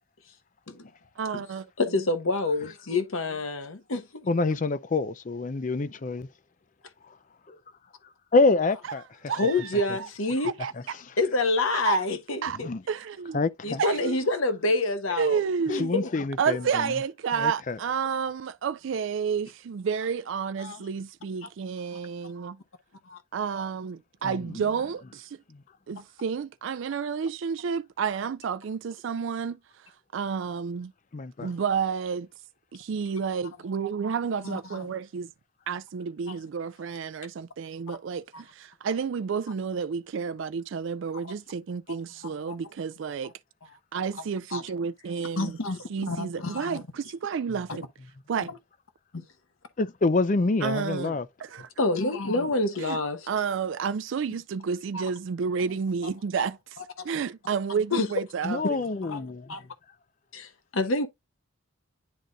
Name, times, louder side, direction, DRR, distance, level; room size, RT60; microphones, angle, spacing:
voice 1, 1.2-1.7 9.3-10.1 10.4-11.0 11.8-12.0 12.4-12.6 12.9-13.4 13.8-14.2 15.1-16.0 16.4-22.6 23.3-25.4 25.9-30.9 31.4-32.3 32.7-35.3 35.7-43.3 43.9-45.6 45.9-47.8 48.3-48.5 50.6-51.7 52.8-53.0 53.3-58.8, right 6 dB, 65° right, 0.4 m, -30 dB
voice 2, 1.8-4.3 9.3-10.5 11.2-12.7 13.6-15.4 15.7-16.1 20.6-20.8 21.4-21.5 23.1-23.2 31.4-31.5 34.4-34.9 38.3-38.4 42.2-42.3 44.5-44.6 45.4-46.8 47.7-47.8 49.1-49.2 51.8-53.3 54.9-55.0 56.4-56.5 57.0-57.1 57.9-58.1 59.1-59.2 59.5-59.7 60.3-61.1, left 2 dB, 75° left, 1.0 m, -28 dB
voice 3, 4.3-6.3 7.5-7.6 8.0-9.0 10.7-10.8 12.5-12.8 13.3-13.8 15.8-16.9 17.3-17.8 24.2-24.6 25.5-25.6 31.1-31.5 49.8-51.3 58.4-59.6, left 3 dB, 35° left, 0.4 m, -27 dB
10.5 x 3.9 x 2.3 m
head